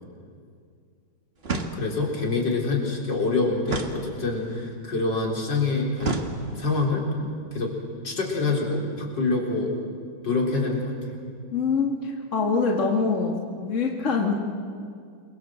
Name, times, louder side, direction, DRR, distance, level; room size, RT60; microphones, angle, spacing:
sound 1, 1.4-2.2 3.6-4.6 6.0-6.8, right 3 dB, 35° right, 1.8 m, -31 dB
voice 1, 1.7-6.2 6.6-7.0 7.5-7.7 8.0-9.8 10.2-11.2, left 3 dB, 65° left, -1 dB, 4.6 m, -26 dB
voice 2, 11.5-14.3, left 4 dB, 40° left, 0 dB, 2.1 m, -24 dB
28.0 x 22.5 x 7.6 m, 2.2 s
omnidirectional pair, 2.1 m